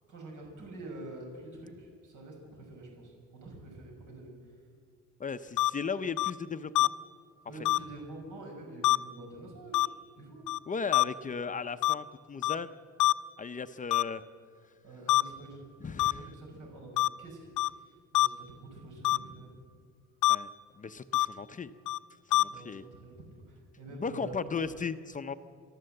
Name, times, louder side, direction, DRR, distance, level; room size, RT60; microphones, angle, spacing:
voice 1, 0.1-4.3 7.5-9.9 10.2-10.4 14.8-19.5 22.4-23.1 23.5-24.5, right 2 dB, 75° right, 0 dB, 6.0 m, -47 dB
voice 2, 5.2-6.9 10.7-12.7 13.4-14.2 15.8-16.2 20.3-20.5 20.8-21.7 22.3-22.8 23.9-25.3, left 5 dB, 25° left, 11 dB, 0.6 m, -36 dB
sound 1, 5.6-5.7 6.2-6.3 6.7-6.9 7.6-7.8 8.8-9.0 9.7-9.9 10.5-10.6 10.9-11.0 11.8-11.9 12.4-12.5 13.0-13.1 13.9-14.0 15.1-15.2 16.0-16.1 17.0-17.1 17.6-17.7 18.1-18.3 19.0-19.2 20.2-20.3 21.1-21.3 21.9-22.0 22.3-22.4, left 17 dB, 70° left, 0.5 m, -24 dB
28.5 x 12.0 x 7.8 m, 2.2 s
cardioid pair, 130°, 31 cm